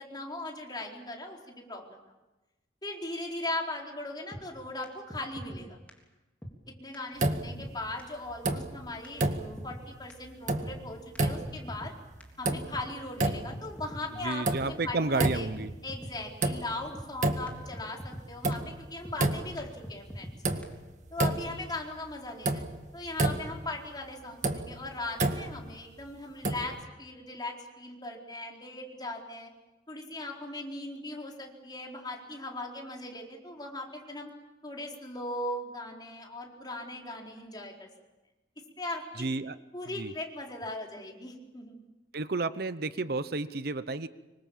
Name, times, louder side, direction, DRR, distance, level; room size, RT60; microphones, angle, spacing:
voice 1, 0.0-2.0 2.8-5.8 6.8-11.9 12.4-15.5 15.8-20.3 21.1-22.6 22.9-29.5 29.9-34.3 34.6-37.9 38.8-39.3 39.7-41.8, left 2 dB, 25° left, 0 dB, 4.4 m, -39 dB
sound 1, 4.3-4.4 4.8-4.9 5.1-5.6 5.9-6.0 6.4-6.5 6.9-7.0 7.2-7.7 8.0-8.1 8.5-8.6 9.0-9.1 9.3-9.8 10.1-10.2 10.6-10.7 11.1-11.9 12.2-12.3 12.7-12.8 13.3-13.4 13.5-14.0 14.3-14.4 14.8-14.9 15.4-15.5 15.6-16.1 16.4-16.5 16.9-17.1 17.5-17.6 17.7-18.2 18.5-18.6 19.0-19.2 19.6-19.7 19.8-20.3 20.6-20.7, equal, 10° left, 3.6 m, -42 dB
sound 2, 7.2-7.9 8.3-8.9 9.2-9.8 10.2-10.8 11.1-11.8 12.2-12.9 13.2-13.7 14.2-14.9 15.2-15.8 16.2-16.9 17.1-17.8 18.1-19.7 20.1-20.2 20.4-21.7 22.0-22.1 22.4-23.7 24.2-25.7 26.4-26.8, right 2 dB, 45° right, 1.8 m, -30 dB
voice 2, 14.2-15.7 39.2-39.6 40.0-40.1 42.1-44.1, right 3 dB, 60° right, 14 dB, 0.8 m, -31 dB
26.0 x 24.5 x 7.3 m, 1.1 s
head